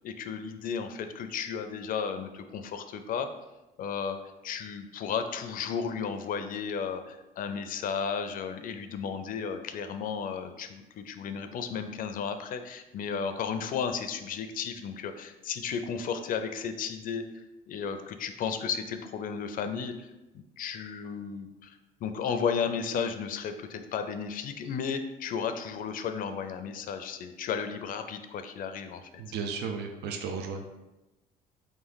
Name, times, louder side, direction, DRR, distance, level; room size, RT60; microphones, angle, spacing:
voice 1, 0.0-3.3 3.8-4.2 4.4-20.1 20.3-29.1, left 6 dB, 55° left, 8 dB, 0.4 m, -34 dB
voice 2, 29.2-30.7, right 5 dB, 75° right, 4 dB, 0.5 m, -34 dB
3.6 x 3.1 x 3.9 m, 1.0 s
cardioid pair, 110°, 17 cm